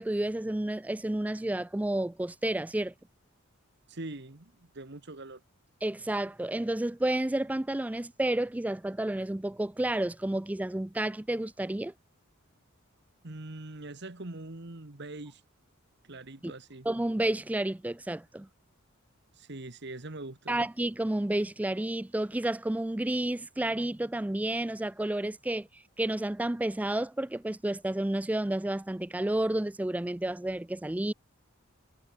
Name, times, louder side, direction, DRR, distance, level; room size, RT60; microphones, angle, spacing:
voice 1, 0.0-2.9 5.8-11.9 16.4-16.5 16.9-18.5 20.5-31.1, right 1 dB, 5° right, 0.3 m, -31 dB
voice 2, 3.9-5.4 13.2-15.4 16.0-16.9 19.3-20.6, right 2 dB, 55° right, 1.6 m, -42 dB
head